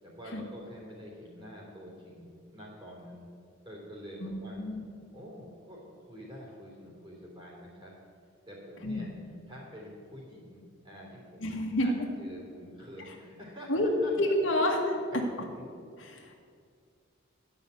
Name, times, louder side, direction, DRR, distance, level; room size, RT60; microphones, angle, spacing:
voice 1, 0.0-3.3 3.6-4.6 5.1-7.9 8.5-9.1 9.5-11.9 12.2-14.3 15.1-15.6, equal, 25° right, -4 dB, 3.2 m, -47 dB
voice 2, 4.2-4.8 8.8-9.1 11.4-11.9 13.7-13.9 14.2-14.8 16.0-16.3, left 1 dB, 70° left, 1 dB, 1.4 m, -29 dB
12.0 x 5.7 x 8.2 m, 2.3 s
head